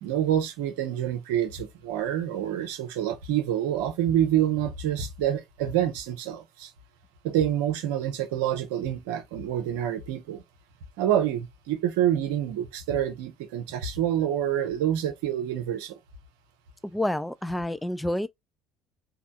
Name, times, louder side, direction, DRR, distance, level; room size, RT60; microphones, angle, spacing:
voice 1, 0.0-6.7 7.2-10.4 11.0-16.0, right 10 dB, 65° right, 0.7 m, -27 dB
voice 2, 16.8-18.3, left 1 dB, 5° left, 0.3 m, -28 dB
3.4 x 2.3 x 3.9 m
figure-of-eight pair, 55°, 0 cm